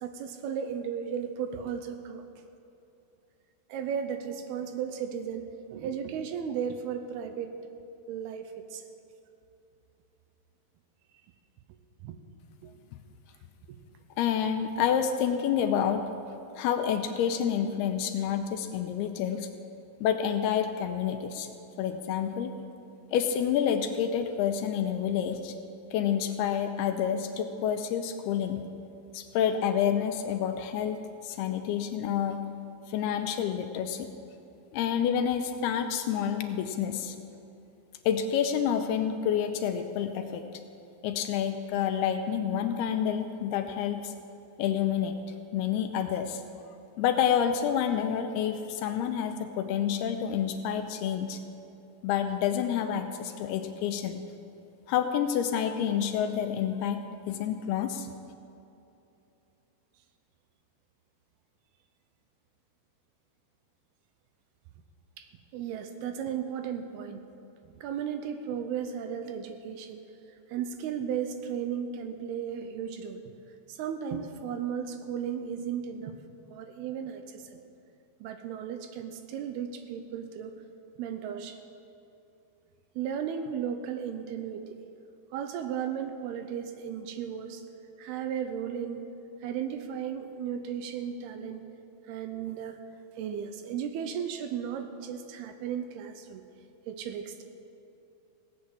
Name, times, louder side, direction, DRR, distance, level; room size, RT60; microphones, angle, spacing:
voice 1, 0.0-2.2 3.7-7.5 8.1-8.8 12.0-12.2 12.6-12.7 13.7-13.8 65.2-65.3 65.5-67.3 67.7-70.1 70.5-73.4 73.7-76.2 76.5-77.6 78.2-80.5 81.0-81.6 83.0-84.8 85.3-87.6 88.0-89.1 89.4-91.7 92.1-92.8 93.2-96.4 96.9-97.4, right 8 dB, 80° right, 7 dB, 2.6 m, -35 dB
voice 2, 14.2-16.0 16.6-19.5 20.0-21.5 21.8-22.5 23.1-25.5 25.9-28.6 29.1-31.0 31.2-32.4 32.9-34.1 34.7-37.2 38.1-40.4 41.0-44.1 44.6-45.2 45.5-46.4 47.0-51.4 52.0-54.3 54.9-58.1, left 8 dB, 80° left, 7 dB, 2.5 m, -28 dB
17.0 x 8.5 x 7.3 m, 2.8 s
omnidirectional pair, 4.8 m